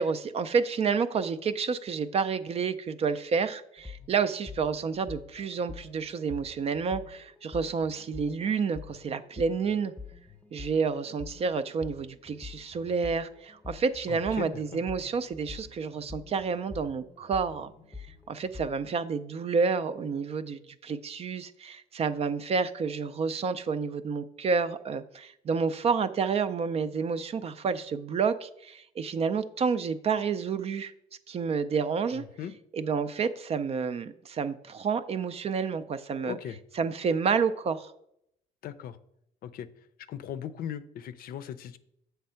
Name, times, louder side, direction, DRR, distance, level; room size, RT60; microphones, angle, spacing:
voice 1, 0.0-9.9 10.5-17.7 18.3-30.9 31.3-32.2 32.7-36.4 36.7-37.9, right 5 dB, 35° right, 12 dB, 0.4 m, -29 dB
sound 1, 3.8-18.9, left 4 dB, 10° left, 0.9 m, -47 dB
voice 2, 14.1-14.8 32.1-32.5 36.2-36.6 38.6-39.0 39.4-39.7 40.1-41.8, left 9 dB, 60° left, 13 dB, 0.5 m, -38 dB
7.4 x 3.4 x 5.6 m, 0.76 s
cardioid pair, 110°, 17 cm